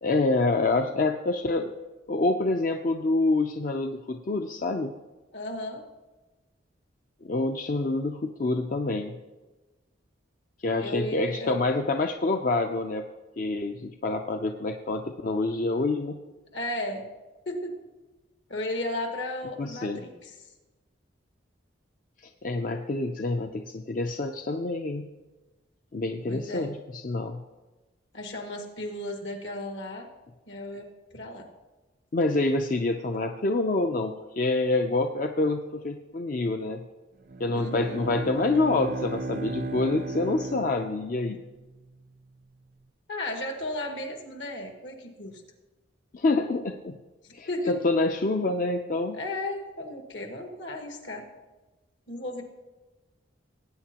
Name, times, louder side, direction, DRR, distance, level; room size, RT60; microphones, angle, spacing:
voice 1, 0.0-1.7 2.1-4.9 7.2-9.2 10.6-13.0 13.4-16.2 19.6-20.0 22.2-25.1 25.9-27.4 32.1-36.8 37.4-41.4 46.1-47.0 47.3-49.2, left 2 dB, 45° left, 5 dB, 0.5 m, -27 dB
voice 2, 5.3-5.8 10.8-11.6 16.5-17.0 17.4-17.8 18.5-20.3 26.3-26.7 28.1-30.1 30.5-31.5 37.5-38.0 43.1-45.4 47.5-47.8 49.1-51.2 52.1-52.4, left 1 dB, 70° left, 3 dB, 1.7 m, -34 dB
Bowed string instrument, 37.2-41.6, right 3 dB, 45° right, 0.5 m, -36 dB
18.5 x 8.8 x 2.9 m, 1.2 s
head